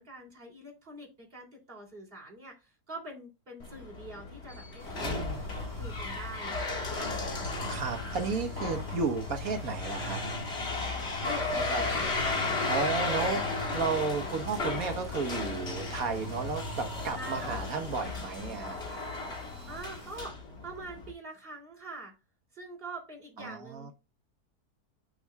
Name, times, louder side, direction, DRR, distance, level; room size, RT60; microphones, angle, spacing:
voice 1, 0.0-5.2 5.5-7.1 11.2-12.4 17.1-17.7 19.7-22.1 22.5-23.9, right 2 dB, 35° right, 3.2 m, -45 dB
sound 1, 3.6-21.1, left 3 dB, 40° left, 1.9 m, -34 dB
sound 2, 4.8-20.2, right 1 dB, 10° right, 3.7 m, -55 dB
voice 2, 5.0-5.5 7.7-10.2 11.5-12.0 12.7-13.4 13.7-18.8 23.4-23.9, right 5 dB, 60° right, 1.5 m, -33 dB
8.7 x 6.4 x 2.3 m
omnidirectional pair, 1.7 m